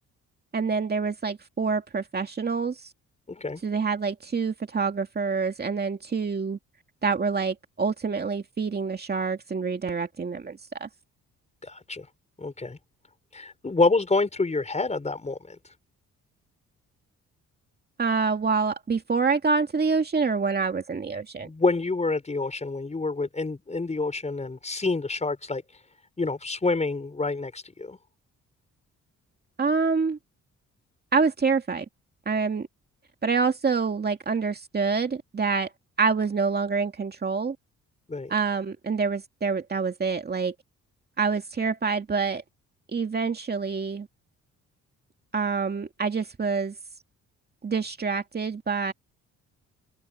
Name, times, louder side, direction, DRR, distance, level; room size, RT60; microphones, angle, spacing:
voice 1, 0.5-2.9 3.6-6.6 7.0-10.9 18.0-21.5 29.6-30.2 31.1-31.9 32.3-32.7 33.2-35.7 36.0-37.6 38.3-40.5 41.2-42.4 42.9-44.1 45.3-46.7 47.6-48.9, right 5 dB, 35° right, 2.3 m, -26 dB
voice 2, 3.3-3.6 11.6-12.1 12.4-12.8 13.3-15.6 21.4-25.6 26.2-28.0 38.1-38.3, left 3 dB, 20° left, 5.8 m, -27 dB
open air
cardioid pair, 90°, 30 cm